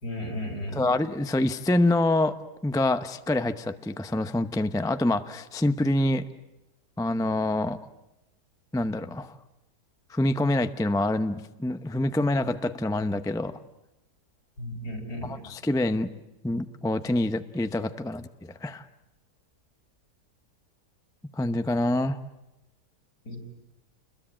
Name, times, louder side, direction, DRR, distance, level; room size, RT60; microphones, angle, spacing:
voice 1, 0.0-0.8 14.6-15.3 23.3-23.4, left 1 dB, 70° left, 2 dB, 5.2 m, -34 dB
voice 2, 0.7-2.3 2.6-6.2 7.0-7.8 8.7-9.3 10.1-13.6 15.2-16.1 16.4-18.3 18.6-18.8 21.4-22.2, left 1 dB, 5° left, 10 dB, 0.4 m, -26 dB
29.5 x 21.5 x 8.9 m, 0.96 s
omnidirectional pair, 1.7 m